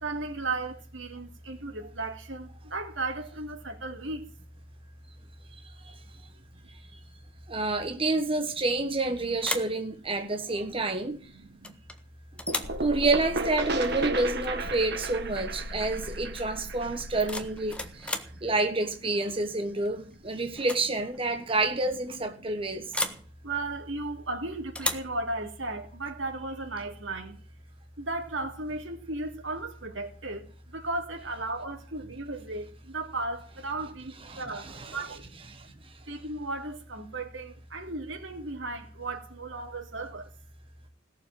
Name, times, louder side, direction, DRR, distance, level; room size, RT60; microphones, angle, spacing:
voice 1, 0.0-4.3 6.1-6.2 6.6-6.7 10.2-11.1 11.3-11.8 14.6-14.7 15.6-15.7 16.1-17.0 17.7-18.4 19.5-19.6 20.0-20.1 20.5-20.6 21.3-21.4 22.4-27.4 28.0-35.5 36.1-40.3, right 2 dB, 90° right, 3.2 m, -36 dB
voice 2, 7.5-11.2 12.8-23.0 34.3-35.0 35.5-35.7, right 2 dB, 30° right, 1.4 m, -29 dB
sound 1, 8.7-9.0 9.4-9.8 11.6-12.0 12.4-12.8 14.7-14.8 15.2-15.5 17.0-18.4 19.8-20.1 20.5-20.9 21.1-21.2 22.9-23.3 24.7-25.1, left 2 dB, 5° left, 1.4 m, -34 dB
sound 2, 12.5-18.1, right 3 dB, 60° right, 2.1 m, -34 dB
sound 3, 12.6-18.2, left 1 dB, 65° left, 1.1 m, -41 dB
17.5 x 7.2 x 9.1 m
head